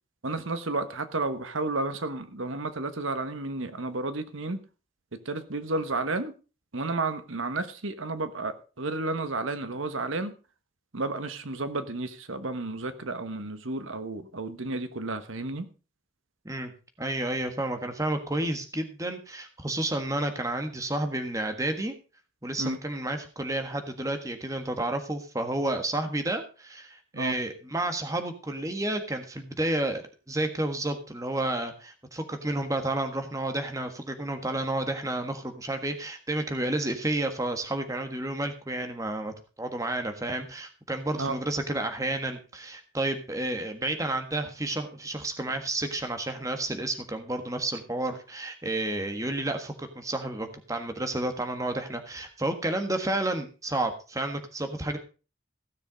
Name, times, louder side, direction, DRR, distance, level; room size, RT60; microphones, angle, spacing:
voice 1, 0.2-4.6 5.1-6.3 6.7-10.3 10.9-15.7 22.6-22.8 27.1-27.4 41.2-41.4, right 2 dB, 85° right, 10 dB, 1.3 m, -32 dB
voice 2, 17.0-21.9 22.4-55.0, right 1 dB, 15° right, 6 dB, 1.5 m, -31 dB
16.0 x 6.9 x 5.1 m, 0.34 s
head